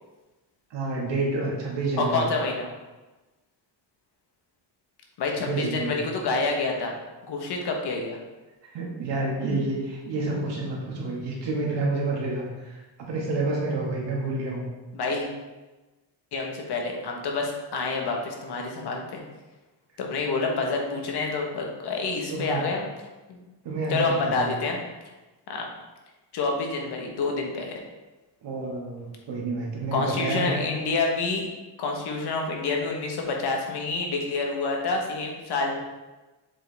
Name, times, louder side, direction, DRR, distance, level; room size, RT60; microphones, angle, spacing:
voice 1, 0.7-2.2 5.4-6.0 8.7-12.8 13.1-14.6 22.3-22.6 23.6-24.5 28.4-30.6, right 2 dB, 60° right, -3 dB, 2.1 m, -29 dB
voice 2, 2.0-2.7 5.2-6.9 7.2-8.2 14.9-15.3 16.3-19.2 20.0-22.9 23.3-23.4 23.9-24.8 25.5-25.7 26.3-27.8 29.9-31.5 31.8-35.8, left 3 dB, 55° left, 1 dB, 1.3 m, -28 dB
7.4 x 5.0 x 3.5 m, 1.1 s
cardioid pair, 170°, 47 cm